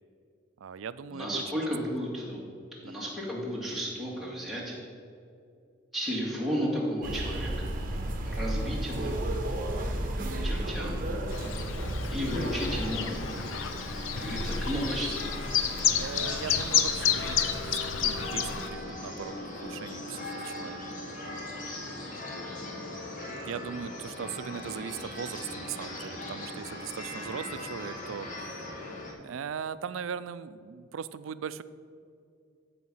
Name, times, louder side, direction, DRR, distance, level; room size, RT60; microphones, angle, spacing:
voice 1, 0.6-1.4 2.8-2.9 7.9-8.2 11.4-11.7 16.0-20.8 23.4-28.5 29.2-31.6, right 7 dB, 90° right, 15 dB, 0.4 m, -39 dB
voice 2, 1.1-2.4 2.8-4.8 5.9-7.7 8.2-9.2 10.4-11.0 12.1-13.3 13.8-15.1, equal, ahead, -5 dB, 2.0 m, -33 dB
sound 1, 7.0-12.9, right 1 dB, 45° right, 1.1 m, -32 dB
Chirp tweet, 11.3-18.7, left 8 dB, 85° left, 0.6 m, -30 dB
sound 2, 12.3-29.1, left 1 dB, 40° left, 1.5 m, -39 dB
14.0 x 5.0 x 5.6 m, 2.4 s
head